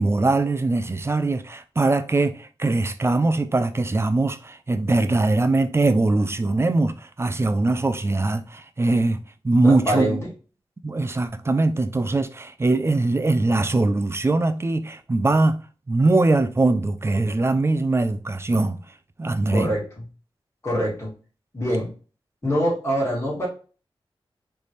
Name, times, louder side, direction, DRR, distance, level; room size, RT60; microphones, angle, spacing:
voice 1, 0.0-9.2 9.4-10.2 10.8-15.6 15.9-18.8 19.2-19.7, right 2 dB, 25° right, 0.4 m, -21 dB
voice 2, 9.6-10.3 19.5-19.8 20.6-21.1 21.5-21.9 22.4-23.5, equal, 30° left, 2.4 m, -24 dB
4.1 x 3.3 x 3.1 m
wide cardioid pair, 85°, 10 cm